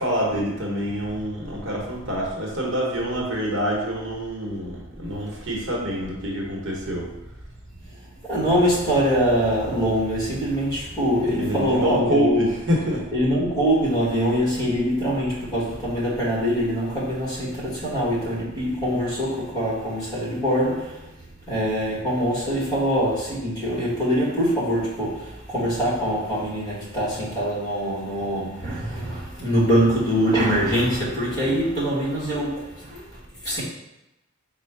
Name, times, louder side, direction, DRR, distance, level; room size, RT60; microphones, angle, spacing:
voice 1, 0.0-7.1 11.3-13.1, equal, 60° right, -3 dB, 1.0 m, -26 dB
voice 2, 8.2-12.5 13.1-21.1 21.5-33.6, equal, 20° left, -6 dB, 1.4 m, -23 dB
4.4 x 2.2 x 4.6 m, 0.93 s
head